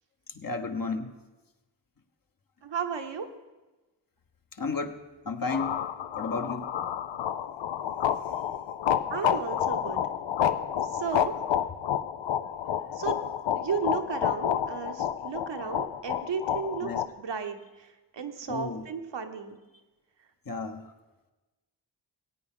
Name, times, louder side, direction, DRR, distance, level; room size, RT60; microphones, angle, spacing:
voice 1, 0.4-1.1 4.6-5.0 5.3-5.8 6.1-6.7 16.8-17.0 18.5-18.8 20.5-20.8, left 4 dB, 50° left, 6 dB, 1.2 m, -32 dB
voice 2, 2.6-3.3 9.1-10.0 10.9-11.3 12.9-13.2 13.5-17.9 18.1-19.6, right 6 dB, 75° right, 6 dB, 1.0 m, -34 dB
sound 1, 5.5-17.1, left 9 dB, 90° left, 0.5 m, -29 dB
18.0 x 8.7 x 3.8 m, 1.2 s
cardioid pair, 45°, 43 cm